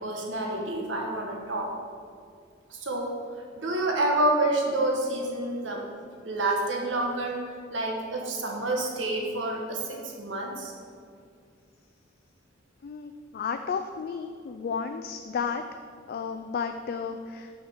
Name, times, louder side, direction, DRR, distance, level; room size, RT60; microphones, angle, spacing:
voice 1, 0.0-1.7 2.7-3.2 3.5-5.8 6.2-7.4 7.7-10.7, right 2 dB, 75° right, 1 dB, 1.2 m, -28 dB
voice 2, 12.8-15.6 16.1-17.5, left 6 dB, 55° left, 6 dB, 0.3 m, -33 dB
6.1 x 5.0 x 6.4 m, 2.3 s
head